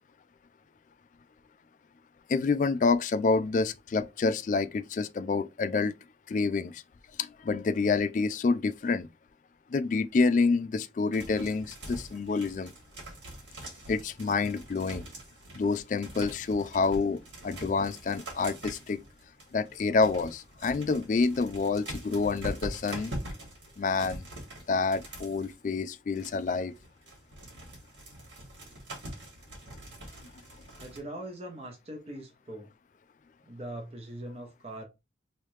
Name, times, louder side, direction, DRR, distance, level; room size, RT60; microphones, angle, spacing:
voice 1, 2.3-5.9 6.3-6.8 7.2-9.1 9.7-12.7 13.9-15.1 15.5-19.0 19.5-23.1 23.8-24.2 24.7-26.7, left 4 dB, 40° left, 0.3 m, -28 dB
sound 1, 11.1-25.5 26.1-31.0, right 1 dB, 80° right, 1.6 m, -44 dB
voice 2, 30.7-32.7 33.4-34.8, right 1 dB, 35° right, 0.7 m, -41 dB
3.2 x 2.7 x 3.1 m
head